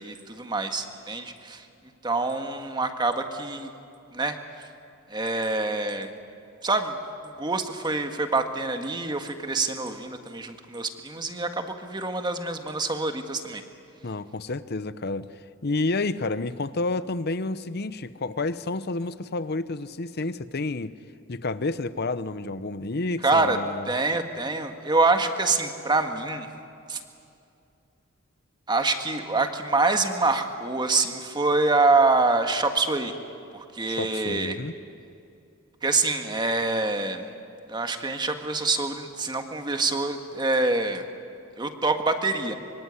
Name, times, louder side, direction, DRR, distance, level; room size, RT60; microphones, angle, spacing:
voice 1, 0.0-1.6 2.0-3.7 4.1-4.4 5.1-6.1 6.6-6.9 7.2-13.6 23.2-23.6 23.8-26.5 26.9-27.0 28.7-33.1 33.5-34.5 35.8-37.3 37.7-41.0 41.6-42.5, right 3 dB, 20° right, 6 dB, 1.7 m, -25 dB
voice 2, 14.0-15.3 15.6-20.9 21.3-23.9 33.9-34.8, left 2 dB, 50° left, 14 dB, 0.8 m, -30 dB
25.0 x 24.5 x 9.7 m, 2.6 s
head